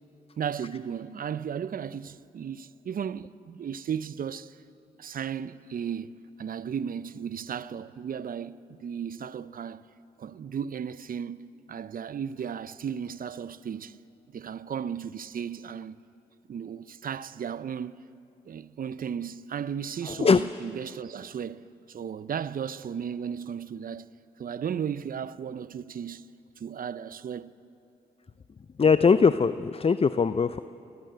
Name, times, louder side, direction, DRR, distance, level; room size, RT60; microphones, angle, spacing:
voice 1, 0.4-4.6 5.0-9.8 10.2-14.0 14.3-16.0 16.5-18.1 18.5-24.1 24.4-26.3 26.6-27.5, right 8 dB, 55° right, 0.7 m, -35 dB
voice 2, 28.8-30.6, left 5 dB, 35° left, 0.6 m, -21 dB
23.5 x 16.0 x 7.9 m
supercardioid pair, 45°, 17 cm